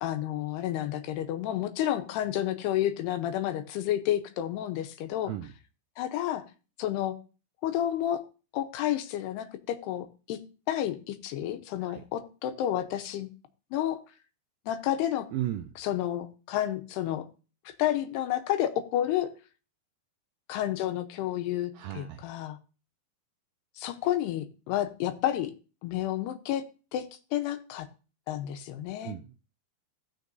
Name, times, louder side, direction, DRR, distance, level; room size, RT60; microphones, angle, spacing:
voice 1, 0.0-5.3 6.0-6.4 6.8-7.2 7.6-8.2 8.5-10.4 10.7-13.3 13.7-14.0 14.7-15.3 15.8-17.3 17.8-19.3 20.5-22.6 23.8-25.5 25.8-26.6 26.9-27.1 27.3-27.9 28.3-29.2, left 12 dB, 85° left, 8 dB, 2.9 m, -30 dB
voice 2, 15.3-15.7 21.7-22.2 29.0-29.3, right 13 dB, 85° right, 5 dB, 2.0 m, -35 dB
16.5 x 6.3 x 2.6 m, 0.34 s
omnidirectional pair, 4.6 m